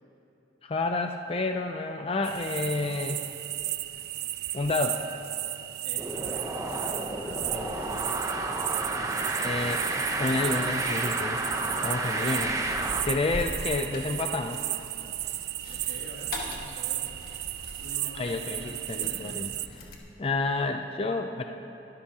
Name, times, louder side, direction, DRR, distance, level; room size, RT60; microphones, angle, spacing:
voice 1, 0.6-3.2 4.5-5.0 7.5-8.0 9.4-11.4 11.8-12.6 13.0-14.6 18.1-19.5 20.2-21.4, left 3 dB, 30° left, 5 dB, 0.4 m, -30 dB
sound 1, 2.2-19.7, right 14 dB, 60° right, 0.4 m, -35 dB
voice 2, 5.8-9.2 15.6-17.1 17.8-19.3, left 1 dB, 85° left, -2 dB, 2.4 m, -46 dB
sound 2, 6.0-13.0, right 2 dB, 20° right, 0.7 m, -31 dB
sound 3, 7.3-20.0, left 1 dB, 55° left, 1.7 m, -44 dB
24.5 x 11.5 x 2.9 m, 2.9 s
head